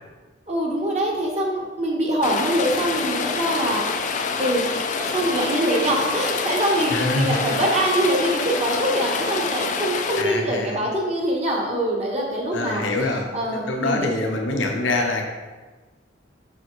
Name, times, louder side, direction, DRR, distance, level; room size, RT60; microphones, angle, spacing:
voice 1, 0.5-3.8 4.4-4.7 5.0-12.8 13.3-14.1, right 1 dB, 35° right, -2 dB, 1.1 m, -24 dB
Rain, 2.2-10.2, left 5 dB, 40° left, 0.4 m, -26 dB
voice 2, 6.9-7.6 10.2-10.8 12.5-15.2, left 2 dB, 75° left, 2 dB, 0.9 m, -25 dB
6.9 x 5.7 x 3.1 m, 1.3 s
head